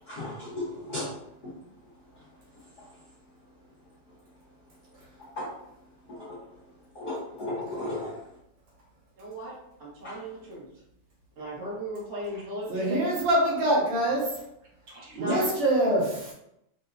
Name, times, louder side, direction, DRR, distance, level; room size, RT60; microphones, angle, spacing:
voice 1, 0.1-1.1 1.4-1.5 5.4-5.5 6.1-6.4 6.9-8.1 10.0-10.2, left 1 dB, 90° left, -8 dB, 0.8 m, -35 dB
voice 2, 9.2-10.7 11.3-13.0 14.1-14.2 14.9-15.5, right 1 dB, 40° right, -7 dB, 1.0 m, -37 dB
voice 3, 12.7-14.3 15.2-16.3, right 1 dB, 70° right, -6 dB, 2.7 m, -24 dB
5.5 x 2.8 x 2.5 m, 0.80 s
omnidirectional pair, 3.3 m